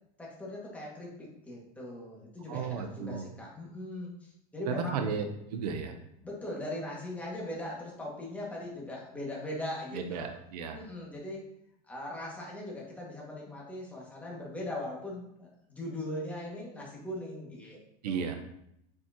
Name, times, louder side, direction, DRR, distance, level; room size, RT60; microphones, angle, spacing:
voice 1, 0.2-5.0 6.2-10.4 10.7-11.5 11.8-18.4, left 1 dB, 5° left, -4 dB, 2.1 m, -40 dB
voice 2, 2.5-3.3 4.7-5.2 5.5-5.9 9.9-10.8 18.0-18.4, right 6 dB, 85° right, 6 dB, 1.0 m, -34 dB
7.7 x 5.1 x 3.0 m, 0.78 s
supercardioid pair, 135°, 20 cm